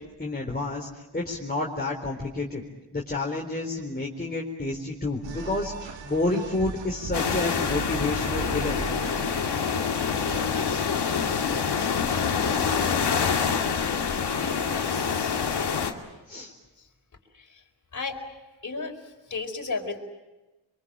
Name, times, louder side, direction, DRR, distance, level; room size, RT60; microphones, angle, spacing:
voice 1, 0.2-0.9 1.1-2.6 2.9-8.8 10.6-10.8 16.3-16.5, left 2 dB, 20° left, -2 dB, 4.0 m, -30 dB
sound 1, 5.2-10.6, right 5 dB, 65° right, 2.3 m, -38 dB
sound 2, 7.1-15.9, left 6 dB, 60° left, 2.5 m, -26 dB
voice 2, 14.1-15.5 17.3-17.6 17.9-18.2 18.6-20.0, left 4 dB, 40° left, 3 dB, 4.8 m, -35 dB
24.0 x 23.5 x 8.9 m, 1.1 s
supercardioid pair, 55°, 47 cm